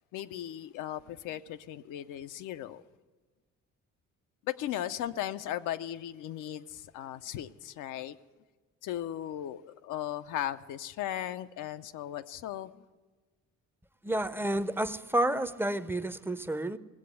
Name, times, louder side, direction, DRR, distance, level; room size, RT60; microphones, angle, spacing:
voice 1, 0.1-2.8 4.5-8.2 8.8-12.7, left 11 dB, 85° left, 11 dB, 0.6 m, -37 dB
voice 2, 14.0-16.8, right 1 dB, 5° right, 13 dB, 0.5 m, -30 dB
18.0 x 7.6 x 8.1 m, 1.3 s
cardioid pair, 90°, 30 cm